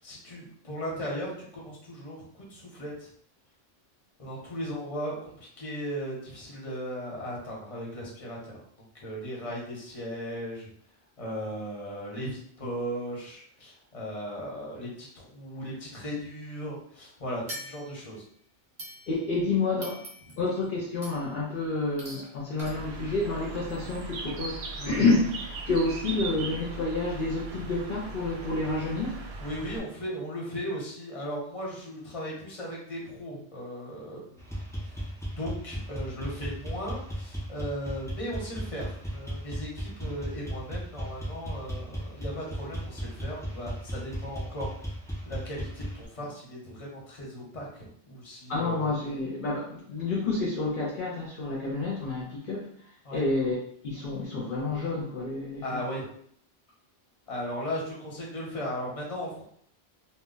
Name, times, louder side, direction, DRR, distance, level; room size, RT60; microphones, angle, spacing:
voice 1, 0.0-3.1 4.2-8.6 8.9-10.7 11.2-18.2 24.8-25.0 29.4-35.0 35.4-44.7 45.3-48.9 53.0-53.2 55.6-56.1 57.3-59.4, equal, 35° left, -3 dB, 0.9 m, -37 dB
sound 1, 17.5-18.2 18.8-19.4 19.8-20.5 21.0-21.4 22.0-22.3 22.6-22.7, equal, 45° right, 0.9 m, -43 dB
voice 2, 19.1-20.0 20.4-29.2 48.5-52.7 53.1-55.8, left 3 dB, 60° left, -5 dB, 0.7 m, -29 dB
Bird, 22.6-29.8, right 3 dB, 80° right, 0.8 m, -39 dB
sound 2, 34.4-46.1, equal, 5° left, 0.4 m, -36 dB
2.1 x 2.1 x 3.7 m, 0.62 s
omnidirectional pair, 1.1 m